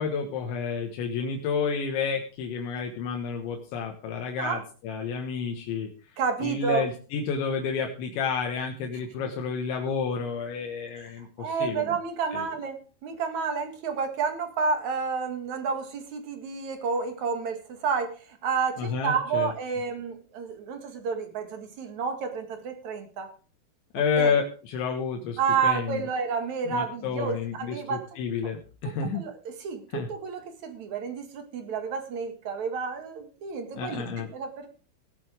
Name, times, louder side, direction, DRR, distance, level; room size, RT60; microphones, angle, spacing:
voice 1, 0.0-12.0 12.3-12.5 18.8-19.5 23.9-26.1 26.7-29.2 29.9-30.1 33.8-34.3, left 6 dB, 80° left, 2 dB, 3.7 m, -30 dB
voice 2, 6.2-6.9 11.4-23.3 24.2-24.3 25.4-28.0 28.8-34.7, right 5 dB, 50° right, 6 dB, 2.6 m, -30 dB
17.5 x 7.7 x 5.0 m, 0.38 s
omnidirectional pair, 5.3 m